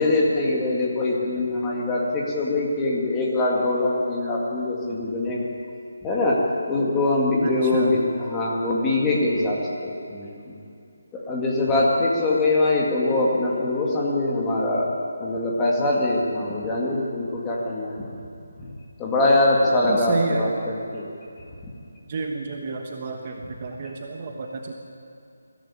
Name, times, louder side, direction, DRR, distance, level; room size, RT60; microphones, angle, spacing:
voice 1, 0.0-5.4 6.0-10.6 11.1-14.9 15.2-18.1 19.0-21.1, left 2 dB, 10° left, -3 dB, 2.1 m, -23 dB
voice 2, 7.4-8.0 19.9-20.5 22.1-24.7, right 3 dB, 25° right, 2 dB, 1.2 m, -30 dB
21.5 x 15.5 x 9.8 m, 2.6 s
hypercardioid pair, 175°, 0 cm